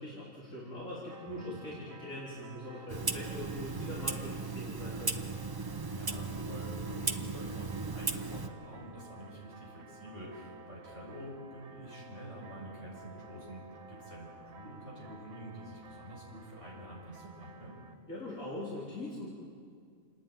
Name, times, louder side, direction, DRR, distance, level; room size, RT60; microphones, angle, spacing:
voice 1, 0.0-5.1 18.1-19.3, left 1 dB, 80° left, -8 dB, 4.0 m, -42 dB
sound 1, 1.1-17.9, right 4 dB, 85° right, 1.5 m, -55 dB
Clock, 2.9-8.5, right 3 dB, 20° right, 0.6 m, -36 dB
voice 2, 5.6-17.8, equal, 60° left, -4 dB, 5.8 m, -47 dB
28.5 x 10.0 x 9.2 m, 2.2 s
omnidirectional pair, 1.4 m